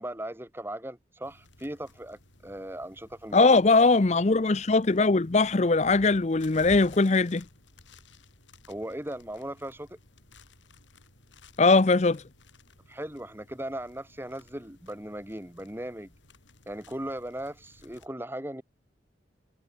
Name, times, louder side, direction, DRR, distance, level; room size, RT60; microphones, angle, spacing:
voice 1, 0.0-3.6 8.7-10.0 12.9-16.1 16.7-18.6, right 1 dB, 10° right, 2.0 m, -38 dB
sound 1, 1.2-18.1, left 2 dB, 85° left, 7.2 m, -55 dB
voice 2, 3.3-7.4 11.6-12.2, left 3 dB, 35° left, 0.6 m, -21 dB
head